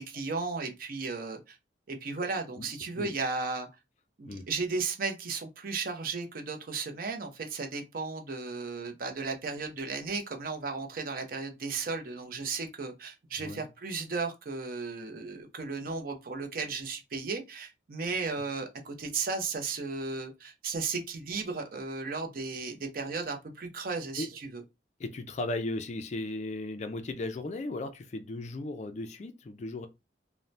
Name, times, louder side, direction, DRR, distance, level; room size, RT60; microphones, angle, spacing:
voice 1, 0.0-1.6 1.9-3.7 4.2-24.6, right 4 dB, 50° right, 0.5 m, -35 dB
voice 2, 25.0-29.9, left 2 dB, 40° left, 0.3 m, -36 dB
2.6 x 2.0 x 3.1 m
head